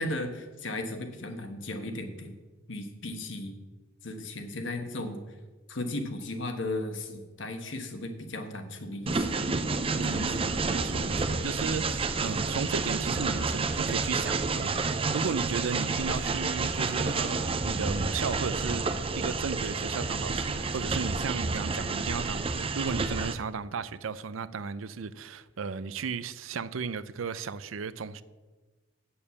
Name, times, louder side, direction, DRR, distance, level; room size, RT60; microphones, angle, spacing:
voice 1, 0.0-2.3 2.7-3.6 4.0-5.2 5.7-9.4 10.0-10.5, left 2 dB, 65° left, 1.3 m, -36 dB
Train, 9.1-23.3, right 4 dB, 30° right, 0.6 m, -30 dB
voice 2, 10.0-10.4 10.7-18.8 19.2-28.2, right 5 dB, 90° right, 0.5 m, -35 dB
8.7 x 7.0 x 7.0 m
head